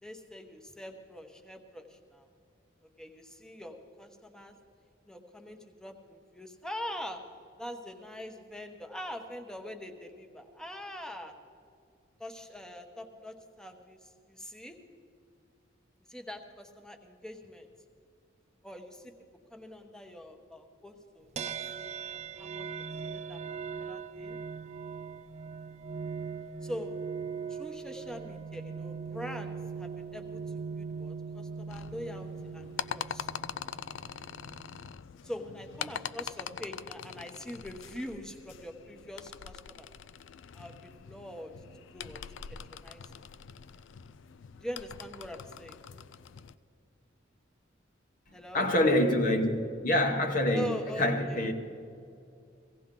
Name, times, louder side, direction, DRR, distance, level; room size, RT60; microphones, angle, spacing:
voice 1, 0.0-2.3 3.0-4.5 5.0-7.2 7.6-11.3 12.2-14.8 16.1-17.7 18.6-19.1 19.5-23.4 23.8-24.4 26.6-27.0 27.5-30.4 30.8-33.3 35.2-39.9 40.5-41.5 41.9-42.2 42.5-43.2 44.6-45.8 48.3-48.7 50.5-51.4, equal, 5° left, 4 dB, 1.0 m, -43 dB
sound 1, 21.4-34.9, right 5 dB, 35° right, 0.4 m, -40 dB
sound 2, 31.7-46.6, left 8 dB, 70° left, 0.4 m, -43 dB
voice 2, 48.5-49.6 49.8-51.5, left 1 dB, 45° left, 4 dB, 1.0 m, -26 dB
17.0 x 16.5 x 3.8 m, 2.4 s
head